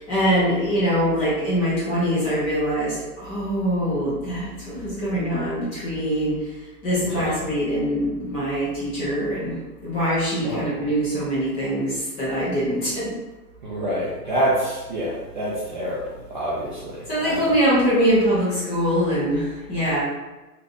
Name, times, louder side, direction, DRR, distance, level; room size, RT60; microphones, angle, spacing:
voice 1, 0.0-6.4 6.8-9.6 9.8-13.1 17.1-20.0, equal, 15° left, -9 dB, 0.6 m, -23 dB
voice 2, 7.0-7.3 10.4-10.9 13.6-17.5, right 1 dB, 35° right, -7 dB, 0.4 m, -27 dB
3.1 x 2.5 x 2.5 m, 1.2 s
hypercardioid pair, 145°, 48 cm